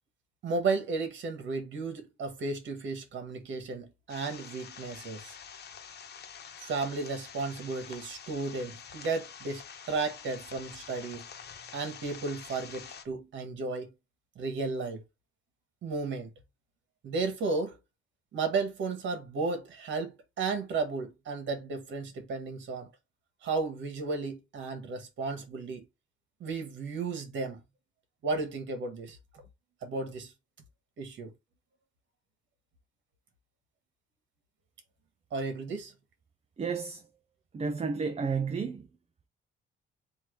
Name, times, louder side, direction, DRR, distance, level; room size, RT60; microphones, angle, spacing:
voice 1, 0.4-5.3 6.6-11.2 11.7-13.9 14.3-15.0 15.8-16.3 17.0-17.8 18.3-22.9 23.4-25.8 26.4-27.6 28.2-29.2 29.8-30.3 31.0-31.3 35.3-35.9, right 4 dB, 70° right, 1.7 m, -34 dB
sound 1, 4.1-13.0, left 7 dB, 55° left, 1.1 m, -47 dB
voice 2, 36.6-37.0 37.5-38.9, right 5 dB, 30° right, 0.7 m, -31 dB
3.6 x 3.0 x 4.7 m
cardioid pair, 90°, 20 cm